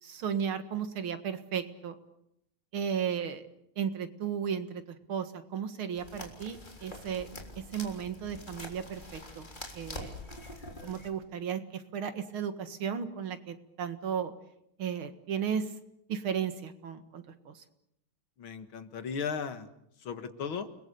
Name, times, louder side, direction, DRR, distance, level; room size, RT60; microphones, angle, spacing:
voice 1, 0.0-1.9 2.7-3.4 3.8-7.3 7.6-9.5 9.8-10.1 10.8-14.3 14.8-15.7 16.1-17.6, right 7 dB, 75° right, 9 dB, 2.6 m, -35 dB
sound 1, 5.9-11.1, left 1 dB, 20° left, 3.8 m, -45 dB
voice 2, 18.4-19.7 20.0-20.7, left 6 dB, 75° left, 10 dB, 2.5 m, -36 dB
30.0 x 21.0 x 6.9 m, 0.76 s
omnidirectional pair, 2.3 m